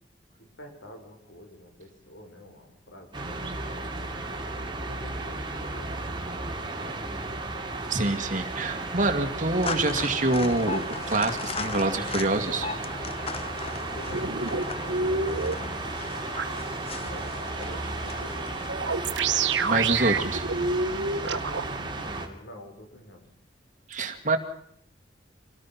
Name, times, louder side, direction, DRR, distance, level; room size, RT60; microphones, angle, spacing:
voice 1, 0.4-6.0 6.4-7.5 13.8-15.8 17.0-18.9 20.9-23.3, left 1 dB, 85° left, 4 dB, 5.0 m, -47 dB
sound 1, 3.1-22.3, right 2 dB, 25° right, 2.7 m, -34 dB
voice 2, 7.9-12.7 19.6-20.4 23.9-24.4, right 2 dB, 45° right, 4 dB, 2.2 m, -26 dB
sound 2, 9.6-18.7, left 5 dB, 30° left, 0.8 m, -38 dB
sound 3, 14.1-15.5 16.4-16.5 18.7-21.6, right 4 dB, 75° right, 1.3 m, -27 dB
26.0 x 18.0 x 5.9 m, 0.71 s
head